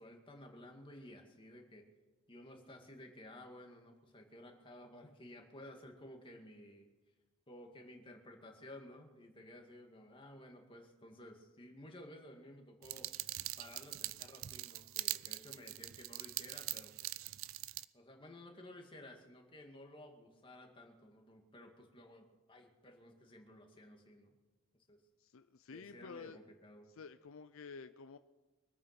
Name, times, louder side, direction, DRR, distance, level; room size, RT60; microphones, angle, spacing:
voice 1, 0.0-1.9 2.3-6.9 7.5-13.1 13.6-17.1 17.9-24.3 24.9-25.0 25.7-26.9, left 1 dB, 25° left, 2 dB, 2.1 m, -55 dB
sound 1, 12.8-17.8, right 16 dB, 70° right, 0.5 m, -43 dB
voice 2, 25.2-26.4 26.9-28.2, left 5 dB, 70° left, 11 dB, 0.5 m, -51 dB
23.5 x 8.9 x 5.9 m, 1.2 s
head